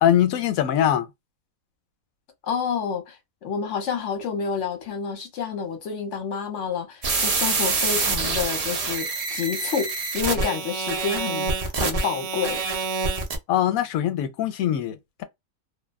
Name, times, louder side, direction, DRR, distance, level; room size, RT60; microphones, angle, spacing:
voice 1, 0.0-1.1 13.5-15.2, left 10 dB, 80° left, 1.0 m, -22 dB
voice 2, 2.4-12.6, left 6 dB, 60° left, 1.2 m, -29 dB
sound 1, 7.0-13.4, right 4 dB, 70° right, 0.3 m, -26 dB
2.6 x 2.3 x 2.2 m
omnidirectional pair, 1.5 m